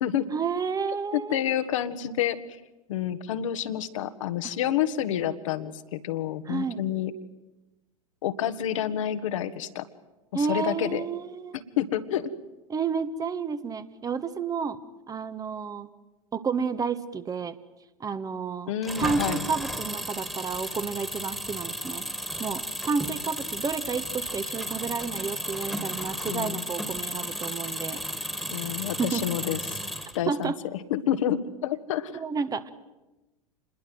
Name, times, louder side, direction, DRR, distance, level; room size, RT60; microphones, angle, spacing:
voice 1, 0.3-1.4 4.4-4.5 6.5-6.8 10.3-11.5 12.7-14.8 15.1-15.9 16.3-17.6 18.0-18.7 19.0-22.0 22.4-28.0 29.0-29.2 30.3-30.6 32.1-32.7, right 5 dB, 20° right, 12 dB, 1.4 m, -31 dB
voice 2, 1.1-2.4 2.9-7.1 8.2-9.8 10.3-11.1 11.8-12.3 18.7-19.4 26.3-26.6 28.5-29.8 30.1-32.2, left 10 dB, 60° left, 10 dB, 1.7 m, -29 dB
Engine, 18.8-30.5, equal, ahead, 2.3 m, -34 dB
27.5 x 21.5 x 7.8 m, 1.1 s
figure-of-eight pair, 90°, 18 cm